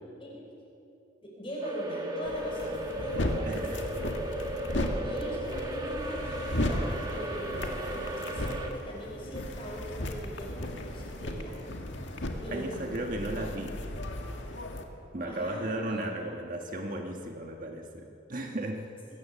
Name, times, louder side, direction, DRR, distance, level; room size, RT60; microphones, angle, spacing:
voice 1, 1.2-3.9 4.8-11.6 12.4-13.4 15.3-16.0, equal, 25° left, -3 dB, 5.8 m, -41 dB
sound 1, 1.6-8.7, right 1 dB, 20° right, 1.8 m, -36 dB
sound 2, 2.2-14.8, left 1 dB, 70° left, 1.9 m, -35 dB
voice 2, 3.4-3.9 12.5-13.8 15.1-18.9, right 1 dB, 45° right, 2 dB, 1.5 m, -35 dB
22.5 x 16.5 x 7.3 m, 2.8 s
head